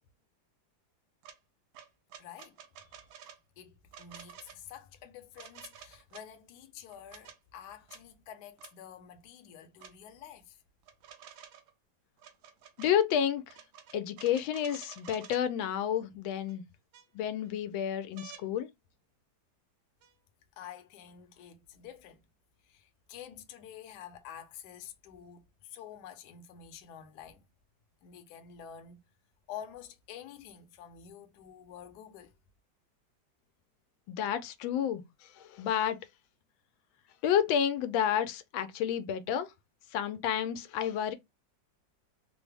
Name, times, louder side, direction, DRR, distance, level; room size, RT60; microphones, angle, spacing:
sound 1, 1.2-1.4 1.7-3.4 3.9-4.6 5.3-6.3 6.9-7.4 7.9-8.0 8.6-8.7 9.8-9.9 10.8-11.7 12.2-12.9 13.5-15.4 16.5-16.6 16.9-17.5 18.2-18.4 20.0-20.1, right 8 dB, 85° right, 1.5 m, -51 dB
voice 1, 2.2-3.0 3.6-10.6 20.6-22.2 22.6-27.4 28.0-29.0 29.5-32.3, left 9 dB, 70° left, 1.1 m, -49 dB
voice 2, 12.8-13.5 13.9-16.6 17.1-18.7 34.1-35.0 35.4-36.0 37.2-39.5 39.9-41.1, left 9 dB, 90° left, 1.4 m, -30 dB
3.7 x 2.0 x 3.3 m
omnidirectional pair, 2.1 m